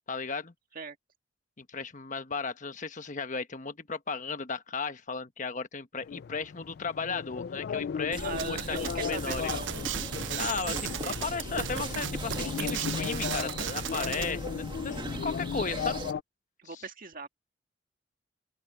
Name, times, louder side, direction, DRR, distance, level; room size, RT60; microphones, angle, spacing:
voice 1, 0.1-0.5 1.6-9.4 10.4-16.0 16.7-16.8, left 4 dB, 45° left, 1.2 m, -35 dB
sound 1, 6.0-16.2, left 6 dB, 60° left, 0.3 m, -36 dB
sound 2, 8.1-16.1, right 2 dB, 25° right, 1.8 m, -39 dB
voice 2, 8.2-9.7 16.6-17.3, right 4 dB, 50° right, 1.9 m, -39 dB
sound 3, 8.4-14.3, right 10 dB, 80° right, 0.6 m, -36 dB
open air
head